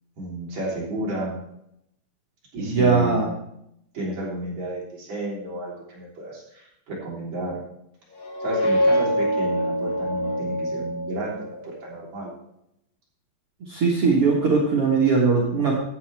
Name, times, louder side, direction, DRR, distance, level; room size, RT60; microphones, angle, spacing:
voice 1, 0.2-1.4 2.5-3.3 3.9-7.5 8.4-11.5 11.8-12.3, right 1 dB, 40° right, -5 dB, 4.4 m, -31 dB
voice 2, 2.6-3.2 13.7-15.7, right 4 dB, 90° right, -3 dB, 1.2 m, -20 dB
sound 1, 8.1-11.7, equal, 65° left, 1.8 m, -24 dB
15.5 x 8.6 x 3.5 m, 0.78 s
omnidirectional pair, 5.1 m